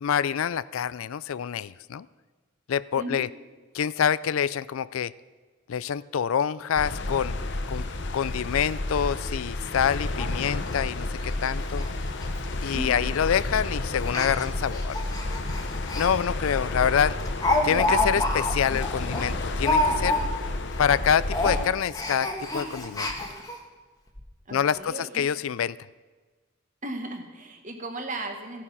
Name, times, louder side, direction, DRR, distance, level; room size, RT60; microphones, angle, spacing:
voice 1, 0.0-2.1 2.7-3.3 3.7-5.1 5.7-7.4 7.7-7.9 8.1-11.9 12.6-15.0 15.9-17.2 17.6-20.2 20.8-23.1 24.5-25.8, left 8 dB, 80° left, 19 dB, 0.4 m, -26 dB
sound 1, 6.8-21.7, left 2 dB, 55° left, 0.9 m, -31 dB
Speech, 9.3-9.4 9.7-9.8 10.2-10.3 10.6-10.8 11.2-11.3 11.6-11.9 12.2-12.3 13.0-13.3 14.0-16.1 16.5-16.6 16.9-20.5 20.8-21.0 21.3-23.6 24.2-24.3 24.5-24.6, left 1 dB, 20° left, 1.4 m, -28 dB
voice 2, 12.7-13.0 24.5-25.2 26.8-28.6, right 2 dB, 35° right, 4 dB, 1.6 m, -36 dB
16.5 x 9.7 x 5.6 m, 1.4 s
head